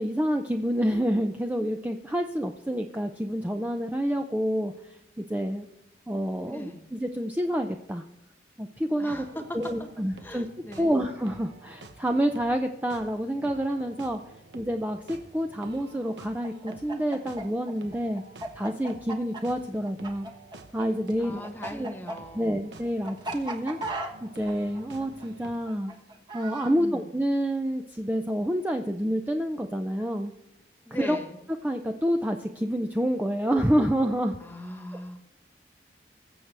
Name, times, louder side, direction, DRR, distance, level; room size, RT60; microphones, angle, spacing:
voice 1, 0.0-5.7 6.1-8.0 8.6-9.3 9.5-10.5 10.8-14.2 14.5-18.2 18.5-20.3 20.7-21.9 22.3-23.8 24.2-25.9 26.3-30.3 30.9-31.2 31.6-34.4, equal, 10° right, 4 dB, 0.5 m, -28 dB
voice 2, 6.5-6.8 9.0-10.9 21.2-22.6 26.8-27.1 30.8-31.4 34.4-35.2, left 1 dB, 10° left, 5 dB, 1.3 m, -40 dB
sound 1, 8.8-25.6, right 2 dB, 75° right, 1.1 m, -50 dB
Chicken rooster, 16.4-20.8 21.1-26.7, right 2 dB, 25° right, 1.2 m, -36 dB
22.0 x 7.4 x 3.4 m, 0.92 s
head